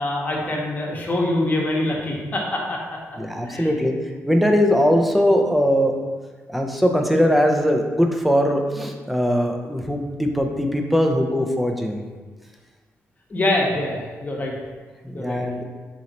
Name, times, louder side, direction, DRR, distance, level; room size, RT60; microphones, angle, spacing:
voice 1, 0.0-3.0 3.4-3.7 13.3-14.5 15.1-15.4, left 1 dB, 30° left, -2 dB, 0.9 m, -24 dB
voice 2, 3.2-3.9 4.3-5.9 6.5-12.0 15.0-15.6, equal, ahead, 2 dB, 0.5 m, -20 dB
3.8 x 3.0 x 4.1 m, 1.4 s
cardioid pair, 100°, 6 cm